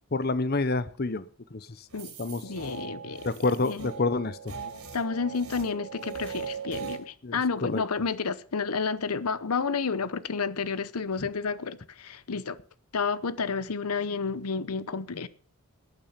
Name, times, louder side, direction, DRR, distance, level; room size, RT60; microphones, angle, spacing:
voice 1, 0.1-1.2 1.5-1.7 2.2-2.4 3.2-4.4 7.2-7.4 7.7-7.8, left 3 dB, 45° left, 0.7 m, -27 dB
sound 1, 1.9-7.0, right 6 dB, 90° right, 4.2 m, -40 dB
voice 2, 2.4-3.9 4.9-12.6 12.9-15.3, left 5 dB, 85° left, 0.8 m, -31 dB
19.0 x 8.9 x 5.8 m
head